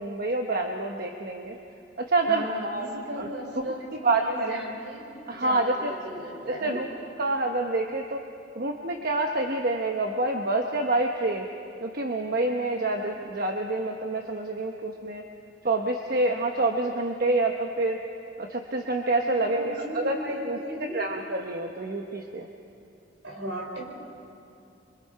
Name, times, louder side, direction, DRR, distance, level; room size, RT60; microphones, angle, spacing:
voice 1, 0.0-1.6 2.0-2.9 3.1-3.3 4.0-4.6 5.3-5.9 6.5-6.9 7.2-8.2 8.5-11.5 11.8-15.2 15.6-18.0 18.4-20.6 20.9-22.5, right 2 dB, 50° right, 2 dB, 1.1 m, -27 dB
voice 2, 2.3-6.8 19.4-21.0 23.2-23.8, equal, 75° right, -1 dB, 5.0 m, -36 dB
27.0 x 24.5 x 4.7 m, 2.7 s
head